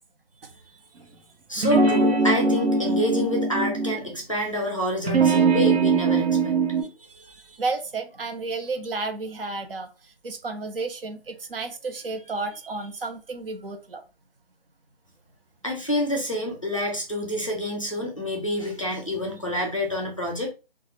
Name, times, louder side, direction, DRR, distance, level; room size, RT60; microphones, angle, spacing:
voice 1, 1.5-6.5 15.6-20.5, left 1 dB, 30° left, 0.5 m, -28 dB
sound 1, 1.6-4.0 5.0-6.8, right 4 dB, 80° right, 0.9 m, -21 dB
voice 2, 7.0-9.9 10.2-14.0, right 3 dB, 60° right, 0.6 m, -32 dB
2.4 x 2.0 x 2.9 m
figure-of-eight pair, 175°, 31 cm